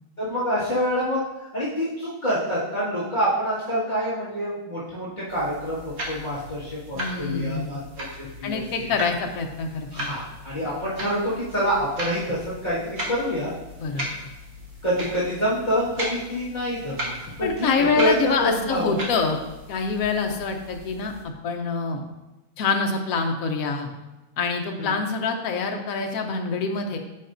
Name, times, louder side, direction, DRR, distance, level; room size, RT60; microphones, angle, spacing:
voice 1, 0.2-1.2 1.5-7.8 8.2-8.9 9.9-13.5 14.8-19.0 24.8-25.0, equal, 30° left, -12 dB, 2.0 m, -26 dB
sound 1, 5.3-21.2, equal, 45° right, 1.6 m, -37 dB
voice 2, 6.9-7.8 8.4-10.1 13.8-14.1 17.4-19.4 19.7-21.1 21.4-22.0 22.6-23.9 24.4-27.0, left 4 dB, 70° left, 3 dB, 1.2 m, -26 dB
9.7 x 5.5 x 2.6 m, 1.1 s
omnidirectional pair, 1.6 m